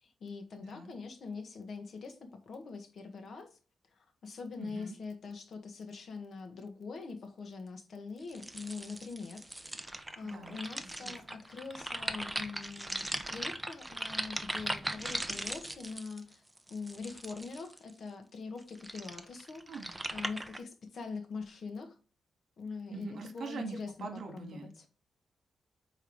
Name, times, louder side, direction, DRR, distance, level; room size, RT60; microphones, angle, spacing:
voice 1, 0.0-3.6 3.9-9.4 9.7-16.4 16.7-19.8 20.1-22.0 22.6-24.9, left 4 dB, 55° left, 6 dB, 1.5 m, -43 dB
voice 2, 4.6-5.0 10.2-10.6 11.0-11.2 19.7-19.9 22.9-24.7, right 4 dB, 60° right, 4 dB, 2.0 m, -43 dB
sound 1, 8.3-17.9 18.6-20.6, right 1 dB, 10° right, 0.6 m, -39 dB
8.6 x 3.7 x 4.7 m, 0.36 s
cardioid pair, 125°, 0 cm